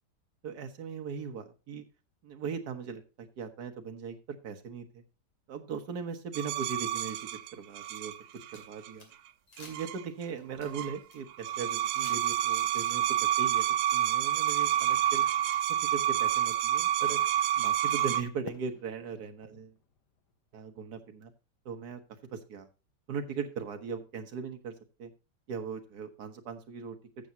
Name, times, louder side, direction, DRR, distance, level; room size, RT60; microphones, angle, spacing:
voice 1, 0.4-1.8 2.2-5.0 5.5-7.2 7.5-9.1 9.6-13.6 13.9-15.2 15.9-17.2 17.6-19.7 20.5-21.3 21.6-22.0 22.3-22.7 23.1-24.7 25.0-25.1 25.5-27.0, right 6 dB, 55° right, 6 dB, 1.6 m, -39 dB
sound 1, 6.3-8.9 9.6-10.2 10.5-11.0 11.3-18.2, right 11 dB, 70° right, 1.1 m, -29 dB
sound 2, 8.1-9.1 9.5-9.9 10.2-11.2 11.6-12.6, left 3 dB, 80° left, 3.3 m, -53 dB
Fireworks, 18.4-21.5, left 8 dB, 60° left, 1.4 m, -51 dB
13.5 x 7.7 x 2.8 m, 0.31 s
omnidirectional pair, 2.3 m